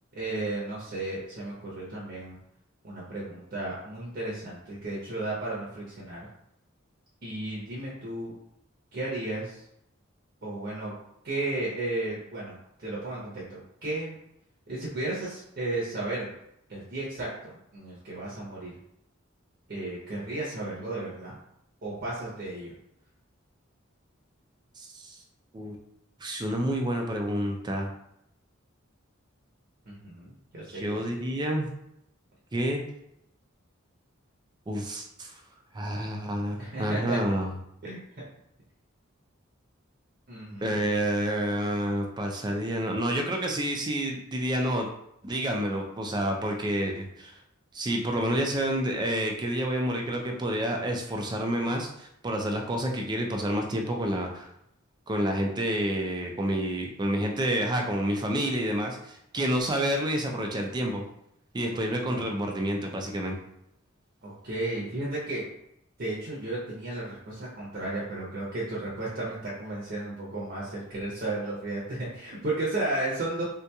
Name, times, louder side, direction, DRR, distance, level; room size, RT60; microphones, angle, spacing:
voice 1, 0.1-2.4 2.8-6.3 7.2-8.3 8.9-9.6 10.4-10.9 11.2-12.5 12.8-14.1 14.7-16.3 16.7-18.8 19.7-21.4 21.8-22.7 29.9-31.0 36.6-37.2 37.8-38.0 40.3-40.9 62.1-62.4 64.2-65.5 66.0-73.4, right 2 dB, 50° right, -5 dB, 0.7 m, -34 dB
voice 2, 24.8-25.2 25.5-25.8 26.2-27.9 30.7-31.7 32.5-32.8 34.7-35.4 35.7-37.5 40.6-44.9 45.2-47.4 47.7-54.5 55.1-61.1 61.5-63.4, right 1 dB, 20° right, 2 dB, 0.4 m, -29 dB
3.6 x 2.8 x 2.3 m, 0.78 s
head